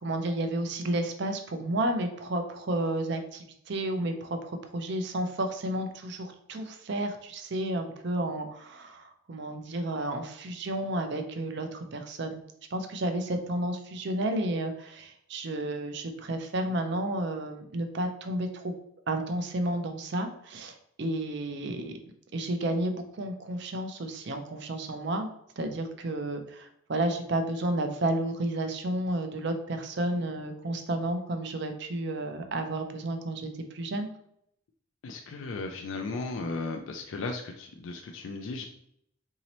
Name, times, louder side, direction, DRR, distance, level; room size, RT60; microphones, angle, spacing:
voice 1, 0.0-12.4 12.7-18.7 19.1-21.9 22.3-25.3 25.6-34.1, right 1 dB, 55° right, 7 dB, 0.5 m, -31 dB
voice 2, 35.0-38.7, left 3 dB, 75° left, 4 dB, 0.4 m, -35 dB
4.0 x 2.7 x 3.0 m, 0.71 s
head